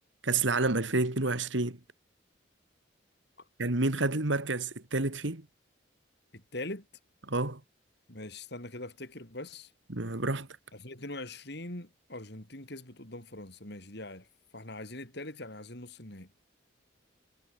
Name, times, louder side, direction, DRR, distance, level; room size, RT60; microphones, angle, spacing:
voice 1, 0.2-1.8 3.6-5.4 7.3-7.6 9.9-10.5, right 2 dB, 70° right, 2.2 m, -29 dB
voice 2, 6.3-6.8 8.1-9.7 10.7-14.3 14.5-16.3, left 2 dB, 55° left, 4.9 m, -42 dB
head